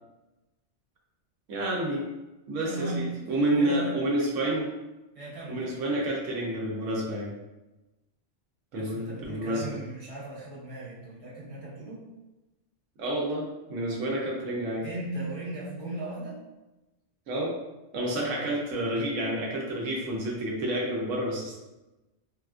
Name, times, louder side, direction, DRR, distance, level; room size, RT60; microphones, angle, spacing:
voice 1, 1.5-2.1 2.5-4.7 5.5-7.3 8.7-9.8 13.0-14.9 17.3-17.5 17.9-21.6, right 1 dB, 80° right, -3 dB, 1.0 m, -29 dB
voice 2, 2.6-3.9 5.1-5.8 8.7-12.0 14.8-16.4 18.0-18.6, right 2 dB, 30° right, -8 dB, 1.0 m, -37 dB
3.5 x 2.4 x 2.3 m, 1.0 s
omnidirectional pair, 1.3 m